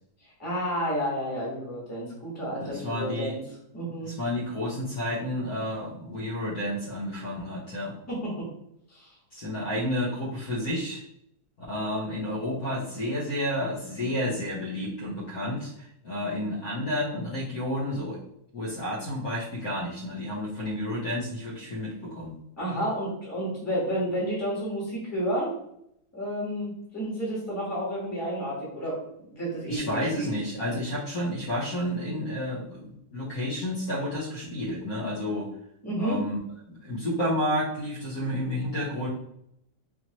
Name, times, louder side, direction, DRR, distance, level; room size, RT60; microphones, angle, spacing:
voice 1, 0.4-3.4 3.7-4.1 8.1-8.4 8.9-9.1 22.6-25.5 26.1-29.0 29.3-30.3 35.8-36.2, equal, 10° left, -5 dB, 1.2 m, -30 dB
voice 2, 2.6-3.4 4.0-7.9 9.3-11.0 11.7-18.2 18.5-22.3 29.7-35.5 36.0-36.4 36.7-39.1, left 1 dB, 55° left, -6 dB, 1.3 m, -31 dB
4.4 x 2.7 x 2.9 m, 0.74 s
omnidirectional pair, 2.1 m